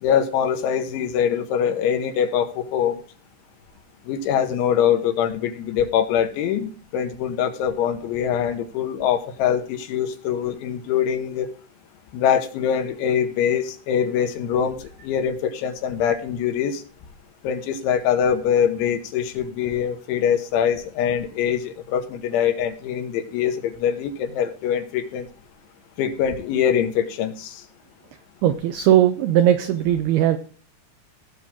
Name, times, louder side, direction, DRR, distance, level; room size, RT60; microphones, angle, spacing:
voice 1, 0.0-3.0 4.1-11.5 12.1-16.8 17.4-25.3 26.0-27.7, left 8 dB, 85° left, 7 dB, 3.5 m, -23 dB
voice 2, 28.4-30.4, right 11 dB, 90° right, 9 dB, 2.2 m, -18 dB
17.5 x 7.1 x 3.7 m, 0.40 s
omnidirectional pair, 5.3 m